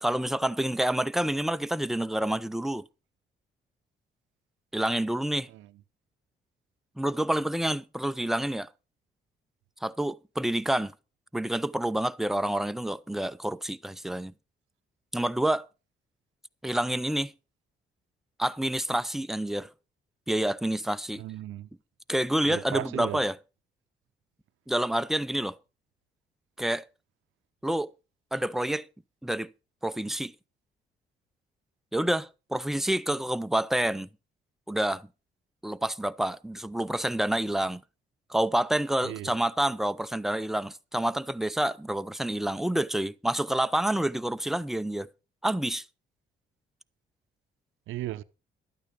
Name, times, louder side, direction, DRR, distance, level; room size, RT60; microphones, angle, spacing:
voice 1, 0.0-2.9 4.7-5.5 7.0-8.7 9.8-10.9 11.3-14.3 15.1-15.7 16.6-17.3 18.4-19.7 20.3-21.2 22.1-23.4 24.7-25.6 26.6-26.9 27.6-27.9 28.3-28.9 29.2-29.5 29.8-30.3 31.9-34.1 34.7-35.1 35.6-37.8 38.3-45.1 45.4-45.8, right 1 dB, ahead, 0.5 m, -28 dB
voice 2, 21.2-21.7 22.4-23.2 39.0-39.3 47.9-48.2, right 14 dB, 80° right, 0.7 m, -36 dB
12.5 x 9.2 x 5.1 m
cardioid pair, 90°, 20 cm